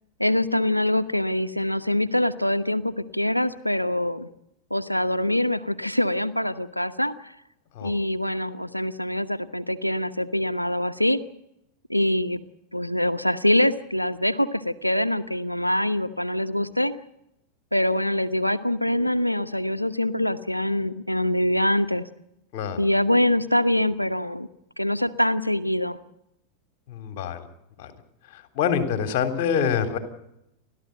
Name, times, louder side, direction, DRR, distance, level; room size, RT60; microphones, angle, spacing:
voice 1, 0.2-4.3 4.7-7.3 7.8-11.2 11.9-12.4 12.7-17.0 17.7-22.0 22.8-24.5 24.8-26.0, left 1 dB, 90° left, 14 dB, 0.9 m, -24 dB
voice 2, 26.9-27.5 27.8-27.9 28.3-30.0, left 7 dB, 45° left, 7 dB, 3.4 m, -26 dB
30.0 x 13.0 x 7.9 m, 0.82 s
figure-of-eight pair, 90°, 0 cm